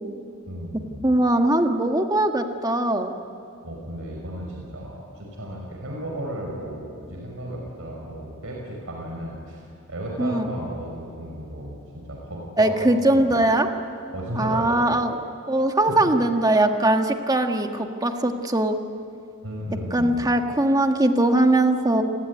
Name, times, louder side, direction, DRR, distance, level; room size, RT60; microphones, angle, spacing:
voice 1, 0.5-1.1 3.6-12.9 13.1-13.4 14.1-14.9 15.7-16.0 19.4-20.3, right 1 dB, 70° right, -1 dB, 5.3 m, -34 dB
voice 2, 1.0-3.1 10.2-10.5 12.6-13.7 14.3-15.2 15.5-18.8 19.9-22.0, right 1 dB, 15° right, 5 dB, 1.6 m, -21 dB
29.5 x 20.5 x 9.7 m, 2.4 s
head